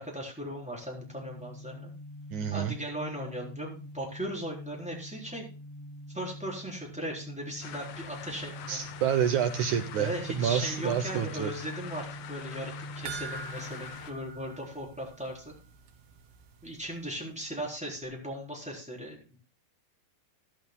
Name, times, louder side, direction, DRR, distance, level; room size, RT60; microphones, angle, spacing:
voice 1, 0.0-1.9 2.5-5.4 6.1-8.8 10.0-15.5 16.6-19.4, equal, ahead, -2 dB, 3.6 m, -38 dB
sound 1, 0.7-15.2, equal, 45° left, 3.5 m, -45 dB
voice 2, 2.3-2.7 8.7-11.5, right 9 dB, 75° right, 8 dB, 1.8 m, -28 dB
sound 2, 7.6-14.1, left 9 dB, 75° left, 2.8 m, -45 dB
sound 3, 13.1-15.6 15.9-16.0 16.4-16.5, right 6 dB, 90° right, 3.3 m, -44 dB
14.5 x 11.5 x 2.3 m, 0.36 s
omnidirectional pair, 4.3 m